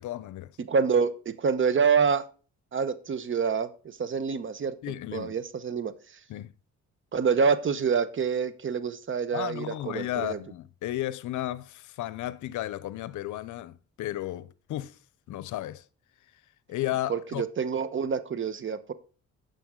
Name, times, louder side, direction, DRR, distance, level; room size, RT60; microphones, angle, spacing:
voice 1, 0.0-0.5 4.8-5.3 6.3-6.5 9.3-15.0 15.3-15.8 16.7-17.4, left 14 dB, 75° left, 0.6 m, -34 dB
voice 2, 0.7-2.2 2.7-4.7 5.1-5.9 7.1-10.4 17.1-18.9, right 6 dB, 40° right, 1.0 m, -27 dB
9.2 x 7.0 x 3.7 m
cardioid pair, 90°, 30 cm